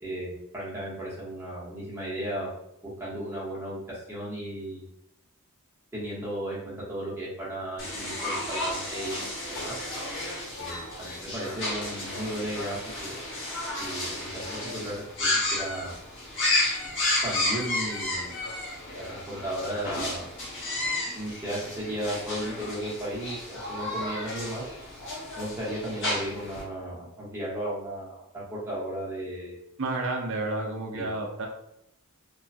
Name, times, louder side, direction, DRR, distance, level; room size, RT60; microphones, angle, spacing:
voice 1, 0.0-2.5 2.8-4.9 5.9-9.8 10.6-13.2 13.8-15.9 17.2-18.3 19.0-20.3 21.1-24.6 25.4-29.5 30.9-31.1, right 1 dB, 10° right, -7 dB, 0.9 m, -35 dB
sound 1, 7.8-26.6, left 2 dB, 55° left, 1.0 m, -32 dB
voice 2, 29.8-31.5, right 2 dB, 60° right, 1 dB, 0.6 m, -30 dB
3.1 x 2.2 x 2.6 m, 0.78 s
head